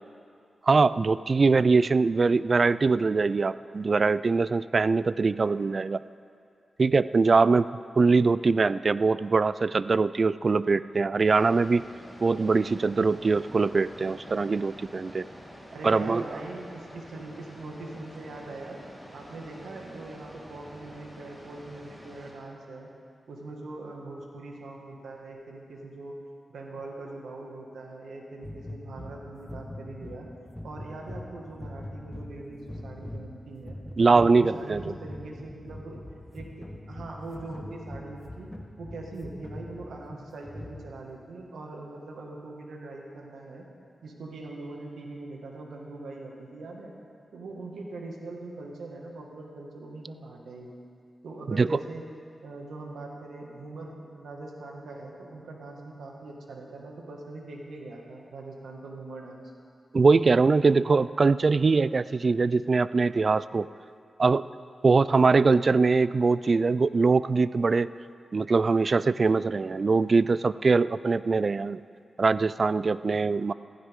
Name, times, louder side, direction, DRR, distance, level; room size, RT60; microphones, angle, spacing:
voice 1, 0.7-6.0 6.8-7.7 8.0-11.8 12.2-15.3 15.8-16.2 34.0-35.0 51.5-51.8 59.9-63.7 64.2-64.4 64.8-67.9 68.3-71.8 72.2-73.5, right 4 dB, 50° right, 17 dB, 0.3 m, -22 dB
sound 1, 11.2-22.3, equal, 10° right, 4.0 m, -47 dB
voice 2, 15.7-18.8 19.1-22.9 23.3-26.2 26.5-30.3 30.6-33.8 34.1-36.0 36.3-38.5 38.8-43.7 44.0-46.9 47.3-50.7 51.2-52.0 52.4-59.5, right 2 dB, 90° right, 0 dB, 1.9 m, -41 dB
sound 2, 28.4-41.1, left 1 dB, 10° left, 1.5 m, -42 dB
15.0 x 15.0 x 3.7 m, 2.3 s
cardioid pair, 55°, 0 cm